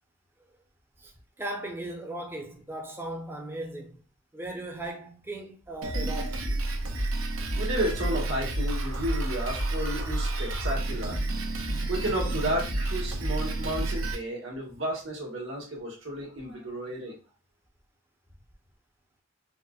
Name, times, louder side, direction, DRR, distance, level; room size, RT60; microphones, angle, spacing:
voice 1, 1.4-4.0 4.3-6.4, right 1 dB, 10° right, 0.5 m, -37 dB
Drum kit, 5.8-14.2, right 2 dB, 85° right, 0.6 m, -30 dB
voice 2, 7.6-17.2, right 1 dB, 70° right, 1.2 m, -33 dB
4.1 x 2.0 x 2.3 m
head